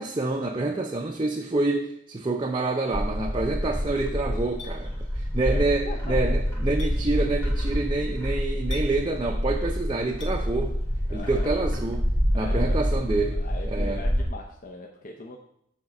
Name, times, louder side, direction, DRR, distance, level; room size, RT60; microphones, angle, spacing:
voice 1, 0.0-10.7 11.1-12.1 12.3-13.4 13.7-14.0, right 2 dB, 25° right, 1 dB, 0.5 m, -27 dB
voice 2, 0.6-0.9 5.5-6.4 7.2-7.3 11.1-11.5 12.3-12.8 13.4-15.4, left 2 dB, 45° left, 0 dB, 0.7 m, -40 dB
Bird, 2.9-14.2, equal, 15° left, 1.5 m, -27 dB
Chink clink, 4.6-4.7 6.8-6.9 8.7-8.9 10.2-10.4, left 4 dB, 65° left, 1.4 m, -40 dB
7.2 x 4.3 x 6.4 m, 0.73 s
head